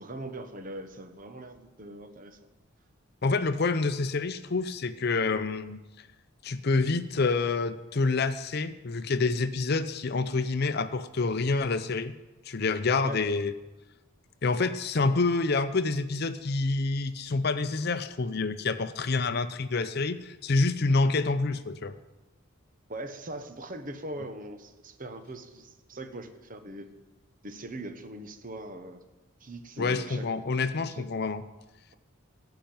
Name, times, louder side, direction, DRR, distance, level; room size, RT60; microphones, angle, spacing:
voice 1, 0.0-2.4 13.0-13.2 22.9-26.9 27.4-29.0 29.4-30.3 30.9-31.1, right 1 dB, 40° right, 7 dB, 1.1 m, -41 dB
voice 2, 3.2-6.1 6.4-12.1 12.5-13.5 14.4-21.9 29.8-31.4, left 3 dB, 50° left, 11 dB, 0.6 m, -27 dB
16.0 x 5.9 x 8.8 m, 1.1 s
head